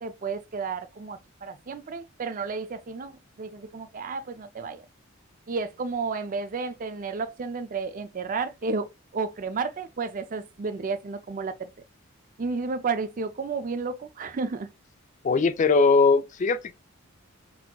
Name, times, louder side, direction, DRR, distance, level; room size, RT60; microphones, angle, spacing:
voice 1, 0.0-4.8 5.5-11.7 12.4-14.7, right 4 dB, 40° right, 0.4 m, -32 dB
voice 2, 15.2-16.8, left 4 dB, 35° left, 0.3 m, -20 dB
4.1 x 2.8 x 2.2 m
head